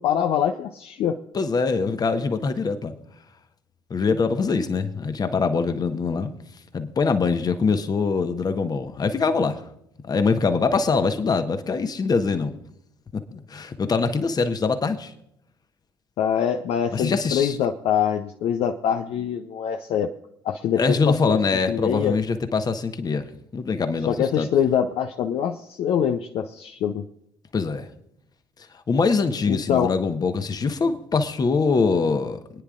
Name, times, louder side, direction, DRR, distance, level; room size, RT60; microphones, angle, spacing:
voice 1, 0.0-1.2 16.2-20.1 20.4-21.4 21.7-22.2 24.1-27.0 29.4-29.9, left 8 dB, 55° left, 6 dB, 0.7 m, -24 dB
voice 2, 1.3-2.9 3.9-6.3 6.7-9.6 10.0-12.5 13.1-15.1 16.9-17.6 20.8-23.2 23.5-24.5 27.5-27.8 28.9-32.6, left 4 dB, 35° left, 9 dB, 1.2 m, -23 dB
25.5 x 9.8 x 2.5 m, 0.75 s
figure-of-eight pair, 55°, 12 cm